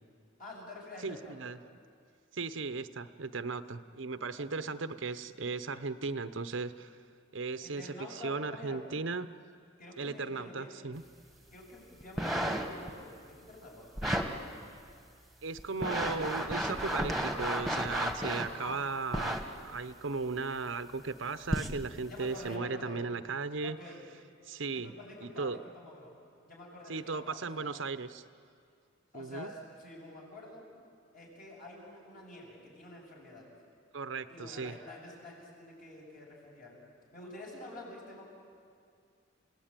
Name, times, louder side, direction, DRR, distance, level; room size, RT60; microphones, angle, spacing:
voice 1, 0.4-1.5 4.4-4.7 7.6-8.8 9.8-10.8 11.5-13.9 18.6-18.9 22.1-23.0 23.6-24.1 24.7-26.1 26.4-27.8 29.1-30.7 31.1-33.5 34.3-36.8 37.1-38.2, left 1 dB, 45° left, -2 dB, 7.3 m, -48 dB
voice 2, 1.0-1.6 2.3-6.9 7.3-9.3 10.0-11.0 15.4-23.8 24.5-24.9 25.2-25.6 26.9-28.2 29.1-29.5 33.9-34.8, right 4 dB, 70° right, 12 dB, 0.8 m, -36 dB
sound 1, 12.0-12.9 14.0-14.3 14.9-15.0 15.6-18.5 19.1-19.4 20.4-20.5 21.5-21.8 22.5-22.6, right 1 dB, ahead, 1.7 m, -32 dB
30.0 x 18.0 x 9.0 m, 2.3 s
head